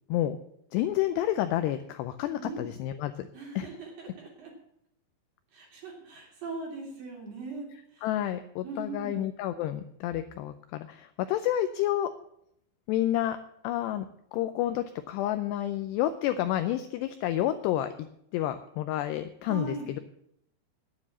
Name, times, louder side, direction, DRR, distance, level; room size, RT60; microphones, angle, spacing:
voice 1, 0.7-3.3 3.6-3.7 8.0-12.1 12.9-13.4 13.6-14.1 14.3-17.9 18.3-20.0, left 12 dB, 85° left, 9 dB, 2.4 m, -29 dB
voice 2, 2.4-2.7 3.3-4.5 5.5-7.7 7.9-8.1 8.6-9.2 19.4-20.0, right 3 dB, 50° right, -1 dB, 4.6 m, -40 dB
9.9 x 9.5 x 7.3 m, 0.74 s
omnidirectional pair, 5.4 m